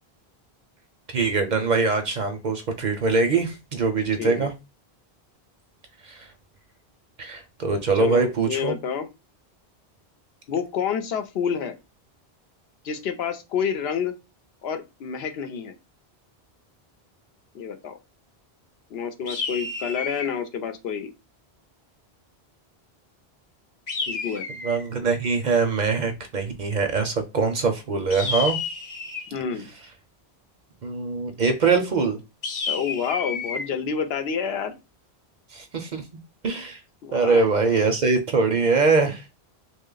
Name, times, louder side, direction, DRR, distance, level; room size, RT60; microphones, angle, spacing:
voice 1, 1.1-4.5 6.0-6.3 7.2-8.7 24.6-28.6 30.8-32.2 35.5-36.0 36.4-36.8 37.1-39.2, right 4 dB, 55° right, 0.6 m, -23 dB
voice 2, 4.2-4.5 7.9-9.1 10.5-11.8 12.8-14.2 14.6-15.7 17.5-18.0 18.9-21.1 24.1-24.5 29.3-29.7 32.7-34.8 37.0-37.5, left 7 dB, 75° left, 0.8 m, -28 dB
sound 1, 19.3-20.4 23.9-24.9 28.1-29.4 32.4-33.7, left 4 dB, 45° left, 0.8 m, -30 dB
3.1 x 2.3 x 3.7 m
omnidirectional pair, 1.1 m